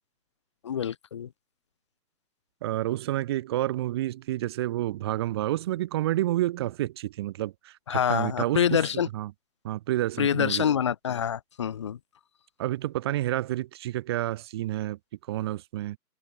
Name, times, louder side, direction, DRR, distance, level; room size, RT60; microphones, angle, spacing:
voice 1, 0.6-1.3 7.9-9.1 10.2-12.0, left 8 dB, 15° left, 2.9 m, -26 dB
voice 2, 2.6-8.8 9.1-9.3 9.6-10.6 12.6-15.0 15.3-16.0, right 14 dB, 15° right, 7.7 m, -29 dB
figure-of-eight pair, 170°, 50 cm